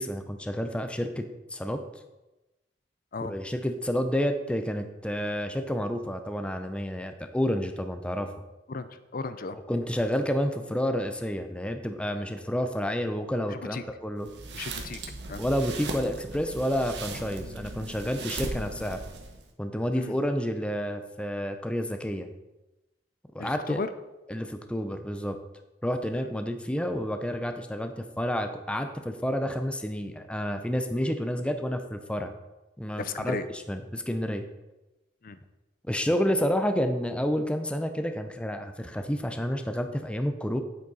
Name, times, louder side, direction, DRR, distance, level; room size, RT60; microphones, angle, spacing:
voice 1, 0.0-1.8 3.2-8.3 9.7-14.3 15.4-19.0 19.6-22.3 23.3-23.8 24.3-25.3 25.8-32.3 32.8-33.4 33.7-34.4 35.9-40.6, equal, 5° left, 7 dB, 0.6 m, -29 dB
voice 2, 8.7-9.6 13.5-13.8 14.5-15.0 15.3-15.4 19.9-20.1 23.4-23.9 33.0-33.5 35.2-35.4, left 4 dB, 50° left, 11 dB, 0.6 m, -35 dB
sound 1, 14.2-19.5, right 2 dB, 65° right, 1.3 m, -38 dB
9.1 x 8.5 x 4.1 m, 1.0 s
head